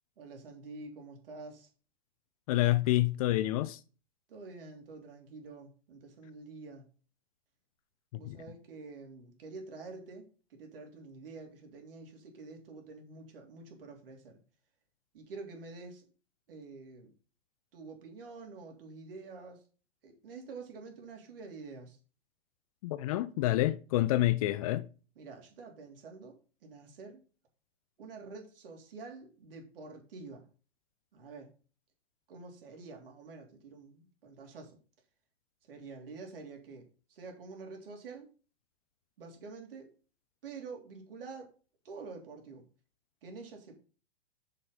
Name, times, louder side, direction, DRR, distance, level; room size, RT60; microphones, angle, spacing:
voice 1, 0.2-1.7 4.3-6.9 8.1-14.4 15.1-16.1 16.5-17.1 17.7-19.6 20.0-22.0 25.2-27.2 28.0-30.4 31.1-31.5 32.3-34.8 35.7-38.3 39.2-39.9 40.4-41.5 41.8-42.6 43.2-43.8, right 4 dB, 60° right, 3.2 m, -48 dB
voice 2, 2.5-3.8 8.1-8.4 22.8-24.8, left 16 dB, 35° left, 0.5 m, -28 dB
7.0 x 6.1 x 5.1 m
figure-of-eight pair, 110°, 31 cm